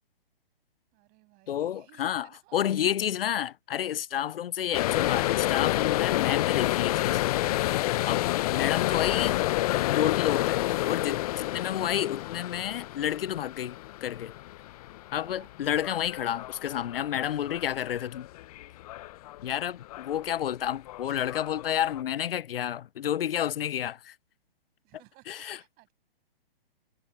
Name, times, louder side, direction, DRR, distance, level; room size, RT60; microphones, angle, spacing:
voice 1, 0.9-3.3 15.1-15.5 24.8-25.9, right 24 dB, 30° right, 7.1 m, -60 dB
voice 2, 1.5-7.2 8.1-9.4 9.9-14.4 15.1-18.3 19.4-24.2 25.3-25.6, left 10 dB, 70° left, 0.5 m, -30 dB
sound 1, 4.7-19.5 19.8-20.3 20.7-22.0, left 16 dB, 40° left, 0.8 m, -29 dB
figure-of-eight pair, 125°, 30 cm